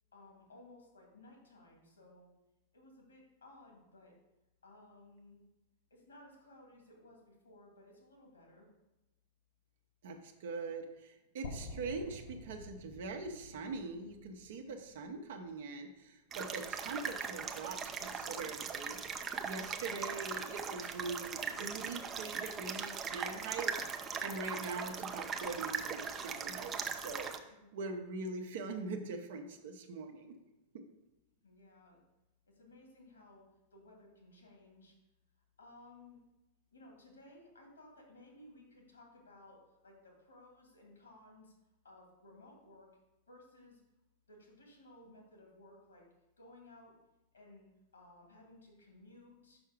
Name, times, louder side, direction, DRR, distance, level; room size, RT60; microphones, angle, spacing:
voice 1, 0.1-2.3 2.7-4.1 4.6-5.5 5.9-8.7 27.4-27.7 31.4-32.0 32.5-33.5 33.7-34.9 35.6-36.2 36.7-41.5 41.8-42.9 43.3-43.8 44.3-46.1 46.4-47.0 47.3-49.6, left 2 dB, 75° left, 0 dB, 2.3 m, -58 dB
voice 2, 10.0-19.0 19.4-23.7 24.2-27.3 27.7-30.4 30.7-30.8, right 3 dB, 60° right, 4 dB, 1.0 m, -42 dB
sound 1, 11.4-15.5, left 2 dB, 55° left, 1.1 m, -49 dB
sound 2, 16.3-27.4, right 6 dB, 25° right, 0.6 m, -40 dB
6.1 x 5.5 x 5.2 m, 0.98 s
figure-of-eight pair, 90°, 0 cm